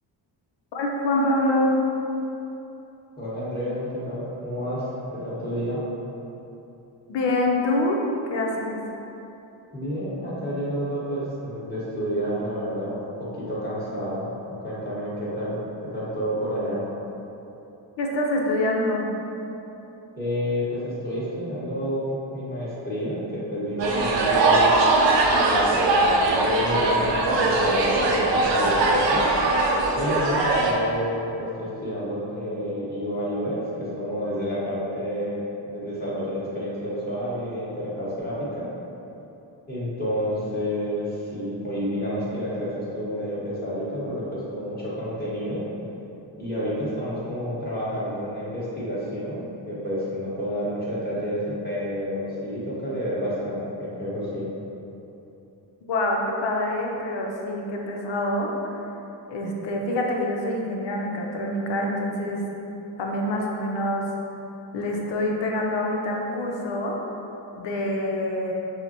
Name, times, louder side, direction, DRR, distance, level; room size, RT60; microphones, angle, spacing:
voice 1, 0.7-1.8 7.1-8.0 8.3-8.8 18.0-19.1 55.9-58.5 59.3-62.4 63.0-64.1 64.7-67.0 67.6-68.5, left 1 dB, 70° left, 0 dB, 0.7 m, -25 dB
voice 2, 3.2-4.9 5.1-5.8 9.7-14.3 14.6-15.6 15.9-16.8 20.2-24.7 25.1-26.0 26.2-29.3 29.9-35.4 35.7-38.7 39.7-45.6 46.4-54.5, equal, 20° left, -9 dB, 1.4 m, -29 dB
sound 1, 23.8-30.7, right 2 dB, 75° right, 0.7 m, -21 dB
5.5 x 2.1 x 2.8 m, 3.0 s
cardioid pair, 80°, 45 cm